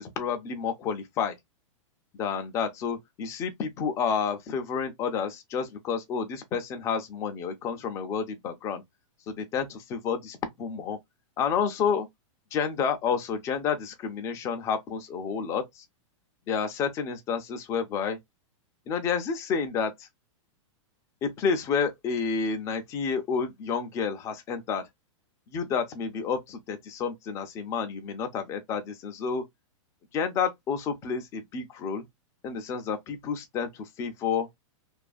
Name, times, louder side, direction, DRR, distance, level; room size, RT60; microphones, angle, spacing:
voice 1, 0.0-1.3 2.1-8.8 9.3-11.0 11.4-12.1 12.5-15.8 16.5-18.2 18.9-20.1 21.2-24.8 25.5-29.4 30.1-32.0 32.4-34.5, left 6 dB, 20° left, 0.4 m, -30 dB
2.4 x 2.4 x 2.4 m
supercardioid pair, 155°, 17 cm